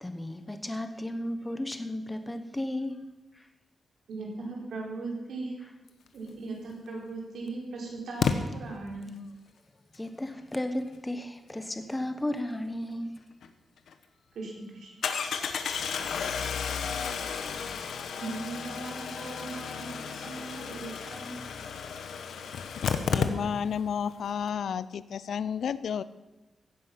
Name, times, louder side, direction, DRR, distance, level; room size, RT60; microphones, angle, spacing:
voice 1, 0.0-3.0 9.9-13.2, left 1 dB, 10° left, 8 dB, 0.9 m, -34 dB
voice 2, 4.1-5.6 6.1-9.2 14.3-14.9 18.2-21.3, right 3 dB, 80° right, -1 dB, 4.0 m, -38 dB
Engine starting, 6.7-6.8 8.2-8.3 13.4-13.5 13.9-14.0 15.0-23.8 24.1-24.2 24.4-24.5, left 6 dB, 90° left, 1.1 m, -32 dB
voice 3, 23.1-26.0, left 7 dB, 70° left, 16 dB, 0.5 m, -31 dB
16.0 x 9.9 x 5.8 m, 1.1 s
wide cardioid pair, 180°, 0 cm